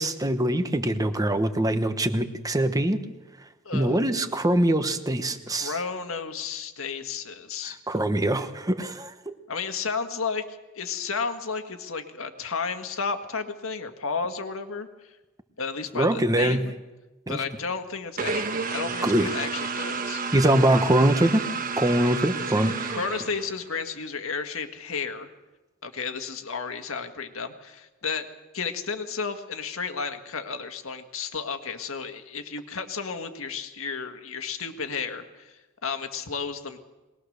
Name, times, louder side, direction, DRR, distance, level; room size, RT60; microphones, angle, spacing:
voice 1, 0.0-3.0 3.7-5.7 7.7-9.3 15.9-16.6 17.3-17.4 19.0-19.3 20.3-21.5 21.8-23.0, right 1 dB, 15° right, 9 dB, 1.1 m, -23 dB
voice 2, 3.6-4.0 5.5-7.8 9.5-15.1 15.6-16.7 17.3-20.2 22.6-25.3 25.8-28.3 28.5-36.8, left 5 dB, 80° left, 7 dB, 1.8 m, -33 dB
sound 1, 18.2-23.8, right 4 dB, 40° right, 1.2 m, -31 dB
22.5 x 20.0 x 6.6 m, 1.1 s
head